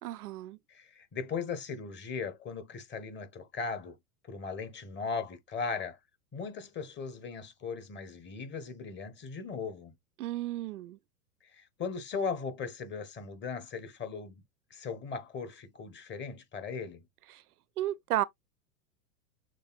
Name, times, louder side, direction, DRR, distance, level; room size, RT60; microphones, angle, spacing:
voice 1, 0.0-0.6 10.2-11.0 17.8-18.2, right 14 dB, 75° right, 0.6 m, -33 dB
voice 2, 0.7-4.0 4.3-6.0 6.3-9.9 11.4-14.4 14.7-17.0, left 5 dB, 25° left, 1.2 m, -38 dB
6.7 x 3.4 x 2.3 m
hypercardioid pair, 100°, 45 cm